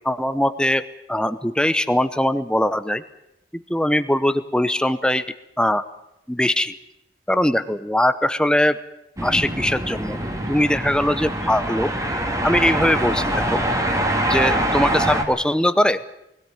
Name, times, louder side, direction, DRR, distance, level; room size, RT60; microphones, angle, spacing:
voice 1, 0.0-0.8 1.1-3.0 3.7-5.2 5.6-5.8 6.3-6.7 7.3-8.8 9.2-10.2 10.5-11.9 12.4-13.6 14.2-16.0, left 1 dB, 5° left, 12 dB, 0.8 m, -21 dB
sound 1, 9.2-15.2, right 1 dB, 20° right, 2.1 m, -24 dB
21.0 x 16.5 x 9.2 m, 0.85 s
head